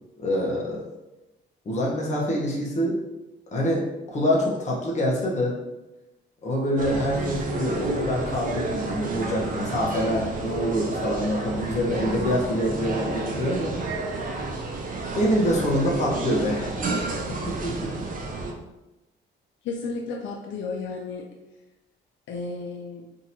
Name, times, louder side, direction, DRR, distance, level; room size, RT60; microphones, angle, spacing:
voice 1, 0.2-0.8 1.6-2.9 3.5-3.8 4.1-5.5 6.4-13.8 15.1-16.8 17.5-17.9, equal, 35° left, -3 dB, 1.1 m, -25 dB
sound 1, 6.8-18.5, right 2 dB, 45° right, 0.6 m, -31 dB
voice 2, 19.6-21.2 22.3-23.1, left 4 dB, 70° left, 0 dB, 0.5 m, -33 dB
3.8 x 2.8 x 2.7 m, 0.99 s
cardioid pair, 90°, 20 cm